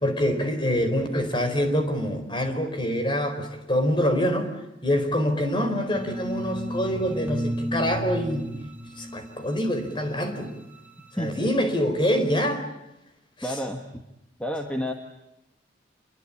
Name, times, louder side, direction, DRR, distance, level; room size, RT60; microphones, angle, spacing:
voice 1, 0.0-4.5 4.8-8.5 9.0-10.5 11.1-12.6 13.4-13.6, equal, 25° left, 6 dB, 4.2 m, -25 dB
sound 1, 5.9-11.1, right 1 dB, 10° right, 2.4 m, -34 dB
voice 2, 13.4-13.8 14.4-14.9, equal, 5° left, 3 dB, 1.6 m, -29 dB
28.0 x 23.0 x 8.7 m, 0.88 s
head